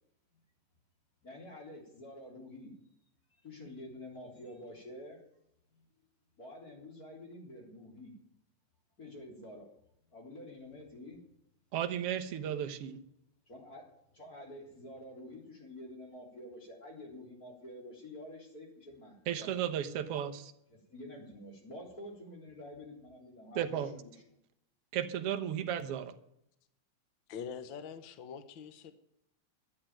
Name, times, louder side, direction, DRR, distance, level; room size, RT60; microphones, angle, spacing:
voice 1, 1.2-2.7 3.4-5.2 6.4-8.1 9.0-9.7 10.1-11.2 13.5-13.8 14.1-19.5 20.7-24.2, left 1 dB, 30° left, 3.8 m, -48 dB
voice 2, 11.7-13.0 19.3-20.5 23.6-23.9 24.9-26.1, right 10 dB, 60° right, 1.8 m, -34 dB
voice 3, 27.3-28.9, left 7 dB, 70° left, 1.1 m, -44 dB
13.0 x 8.5 x 9.0 m
omnidirectional pair, 3.5 m